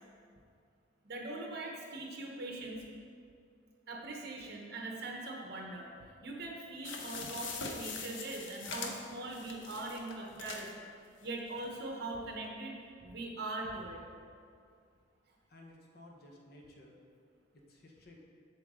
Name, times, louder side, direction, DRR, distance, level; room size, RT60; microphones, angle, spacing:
voice 1, 1.0-2.8 3.9-5.9 6.2-10.9 11.2-14.0, right 2 dB, 60° right, 0 dB, 1.2 m, -41 dB
sound 1, 6.8-10.7 11.3-11.4 11.6-11.7, left 4 dB, 90° left, 0.7 m, -43 dB
voice 2, 15.5-17.0 17.5-18.2, left 1 dB, 55° left, 0 dB, 1.1 m, -56 dB
7.7 x 7.2 x 3.7 m, 2.3 s
head